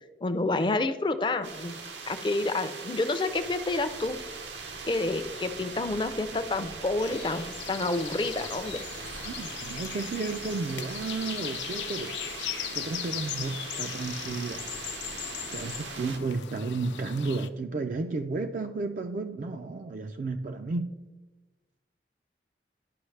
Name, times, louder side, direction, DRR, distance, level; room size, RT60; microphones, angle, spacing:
voice 1, 0.2-1.8 2.1-4.2 4.8-8.8, left 2 dB, 25° left, 0.4 m, -29 dB
sound 1, 1.4-16.2, right 4 dB, 90° right, 0.9 m, -40 dB
sound 2, 7.0-17.5, left 11 dB, 85° left, 0.4 m, -39 dB
voice 2, 9.2-12.2 12.7-14.7 15.5-20.9, right 3 dB, 45° right, 0.3 m, -33 dB
11.5 x 5.4 x 3.2 m
head